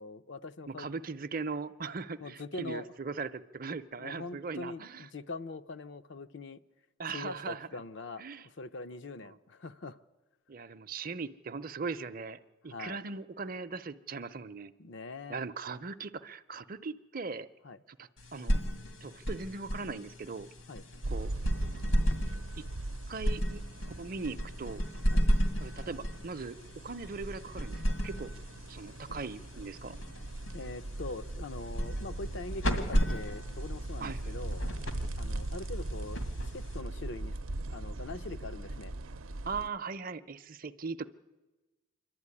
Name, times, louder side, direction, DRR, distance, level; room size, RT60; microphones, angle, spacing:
voice 1, 0.0-0.9 2.2-2.9 4.0-6.6 7.1-10.0 12.7-13.0 14.8-15.4 17.6-17.8 20.7-20.8 25.1-25.3 30.5-34.6 35.1-36.2 36.5-37.4 37.7-38.9, left 3 dB, 65° left, 11 dB, 0.6 m, -43 dB
voice 2, 0.7-5.1 7.0-7.7 8.2-8.5 9.2-9.4 10.5-14.7 15.3-17.5 18.0-18.6 19.0-20.5 21.1-21.3 22.6-22.7 23.1-23.6 24.0-24.9 25.6-26.6 26.8-28.3 28.7-30.0 34.0-34.4 39.4-41.1, right 4 dB, 45° right, 12 dB, 0.6 m, -39 dB
sound 1, 18.2-37.1, equal, 80° left, 2.2 m, -34 dB
sound 2, 21.0-39.7, right 2 dB, 85° right, 0.7 m, -40 dB
27.0 x 12.0 x 9.7 m, 1.2 s
head